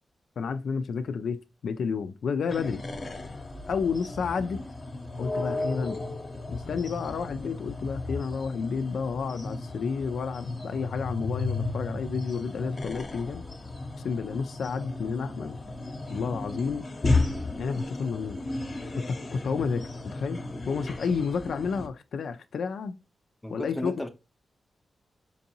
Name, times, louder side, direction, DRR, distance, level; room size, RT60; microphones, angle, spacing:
voice 1, 0.4-2.8 3.7-4.6 5.2-6.0 6.5-13.4 14.0-15.6 16.1-16.8 17.6-18.4 19.1-20.4 20.7-23.0 23.5-23.9, left 5 dB, 80° left, 0.3 m, -31 dB
sound 1, 2.5-21.9, left 2 dB, 40° left, 0.7 m, -34 dB
voice 2, 23.4-24.1, left 1 dB, 5° left, 0.6 m, -34 dB
4.5 x 2.6 x 2.7 m
cardioid pair, 85°, 0 cm